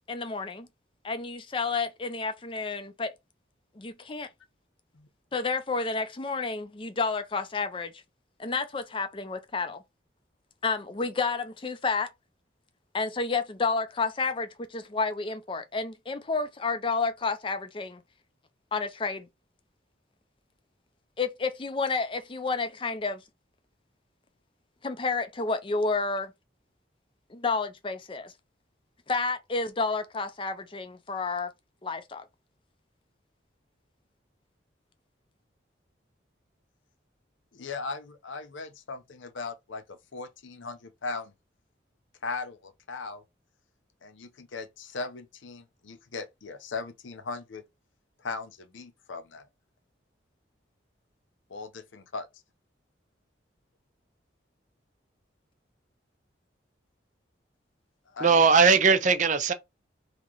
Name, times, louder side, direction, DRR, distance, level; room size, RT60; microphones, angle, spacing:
voice 1, 0.1-0.7 1.0-3.1 3.8-4.3 5.3-8.0 8.4-9.8 10.6-12.1 12.9-18.0 18.7-19.3 21.2-23.2 24.8-26.3 27.3-28.3 29.1-31.5 31.8-32.2, left 4 dB, 25° left, 0.5 m, -30 dB
voice 2, 37.5-41.3 42.2-43.2 44.0-47.6 48.2-49.5 51.5-52.3 58.1-58.4, left 4 dB, 85° left, 0.7 m, -38 dB
voice 3, 58.2-59.5, right 5 dB, 40° right, 0.4 m, -19 dB
3.1 x 2.9 x 3.7 m
head